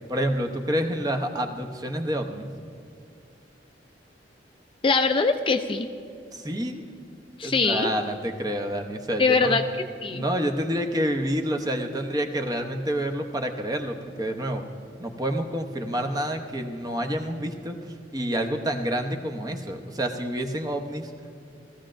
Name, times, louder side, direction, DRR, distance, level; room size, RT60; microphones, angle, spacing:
voice 1, 0.1-2.5 6.3-6.9 7.4-9.6 10.1-14.7 15.0-17.8 18.1-21.1, equal, 20° right, 5 dB, 0.7 m, -28 dB
voice 2, 4.8-5.9 7.4-7.9 9.2-9.6 10.0-10.2, left 4 dB, 30° left, 7 dB, 0.4 m, -22 dB
18.5 x 14.0 x 2.5 m, 2.4 s
head